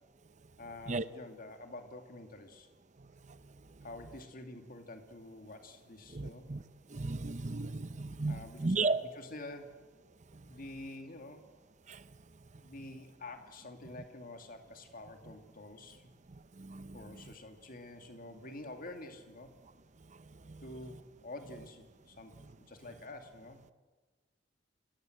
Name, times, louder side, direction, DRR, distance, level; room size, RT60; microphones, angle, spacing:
voice 1, 0.6-2.7 3.8-6.5 8.3-9.9 10.5-11.5 12.6-16.1 16.9-19.5 20.6-23.6, left 2 dB, 50° left, 2.5 m, -48 dB
voice 2, 6.1-6.6 6.9-9.0 16.6-17.0, right 3 dB, 40° right, 0.8 m, -34 dB
30.0 x 18.0 x 7.9 m
head